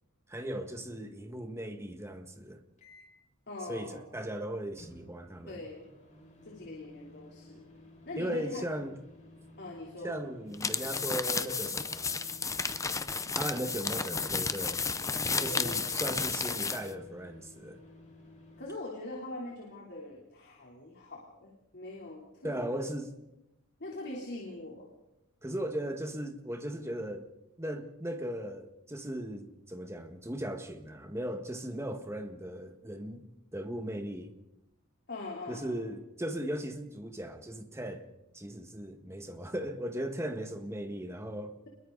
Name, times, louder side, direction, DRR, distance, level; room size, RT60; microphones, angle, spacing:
voice 1, 0.3-2.6 3.7-5.5 8.2-9.0 10.0-12.3 13.3-14.8 15.4-17.8 22.4-23.1 25.4-27.3 27.6-34.3 35.5-38.1 38.3-41.6, right 1 dB, 10° right, 1.6 m, -37 dB
sound 1, 2.8-3.2 4.8-18.7, left 1 dB, 35° left, 6.1 m, -54 dB
voice 2, 3.5-4.1 5.5-5.9 6.4-7.6 8.0-8.6 9.6-10.2 15.3-15.9 18.6-22.9 23.8-24.9 35.1-35.9, left 2 dB, 50° left, 3.5 m, -42 dB
sound 2, 10.5-16.9, left 5 dB, 15° left, 0.7 m, -32 dB
29.5 x 22.0 x 4.0 m
head